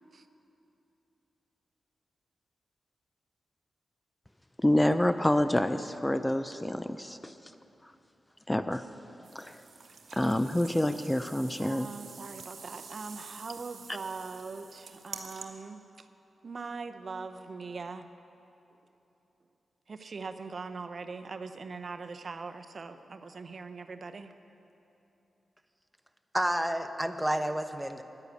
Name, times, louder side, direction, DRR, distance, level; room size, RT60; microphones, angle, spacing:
voice 1, 4.6-7.3 8.5-8.8 9.3-9.6 10.1-11.9, left 1 dB, 15° left, 11 dB, 0.5 m, -27 dB
sound 1, 9.2-15.4, right 5 dB, 75° right, 1.0 m, -48 dB
voice 2, 11.6-16.1 16.4-18.1 19.9-24.3, right 4 dB, 60° right, 8 dB, 0.6 m, -41 dB
voice 3, 26.3-28.0, right 1 dB, 5° right, 8 dB, 0.9 m, -30 dB
10.5 x 9.8 x 8.2 m, 3.0 s
supercardioid pair, 40°, 0 cm